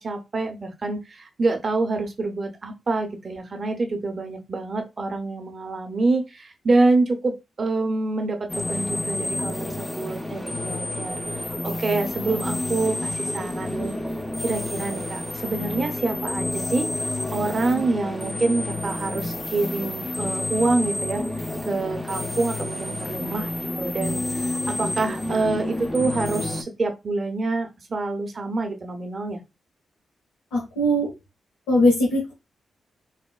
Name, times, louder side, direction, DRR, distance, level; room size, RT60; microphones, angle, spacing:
voice 1, 0.0-14.0 14.4-21.2 21.7-23.5 23.8-29.4, right 3 dB, 50° right, 0.7 m, -26 dB
sound 1, 8.5-26.6, left 1 dB, 15° left, 0.5 m, -29 dB
voice 2, 30.5-31.1 31.7-32.3, equal, 85° left, 0.9 m, -20 dB
4.0 x 2.1 x 2.2 m
hypercardioid pair, 40°, 0 cm